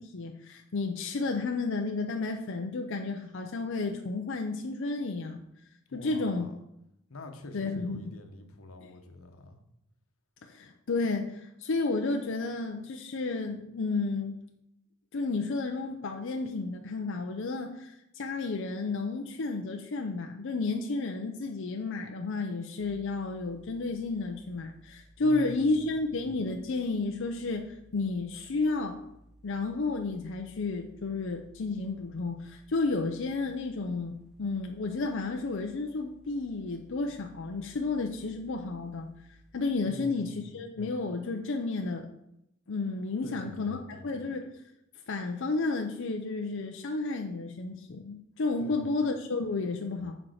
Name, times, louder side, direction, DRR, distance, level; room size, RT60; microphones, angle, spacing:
voice 1, 0.0-5.4 5.9-6.5 7.5-8.1 10.4-14.4 15.1-29.0 29.4-39.1 39.5-42.1 42.7-43.8 44.0-44.5 45.1-50.2, left 3 dB, 65° left, 4 dB, 0.5 m, -32 dB
voice 2, 5.9-6.6 7.1-9.6 25.2-26.0 39.8-40.6 43.2-44.2 48.6-48.9, left 1 dB, 90° left, 6 dB, 1.0 m, -46 dB
sound 1, 22.8-39.9, right 1 dB, 5° right, 0.7 m, -58 dB
6.4 x 4.5 x 6.3 m, 0.82 s
head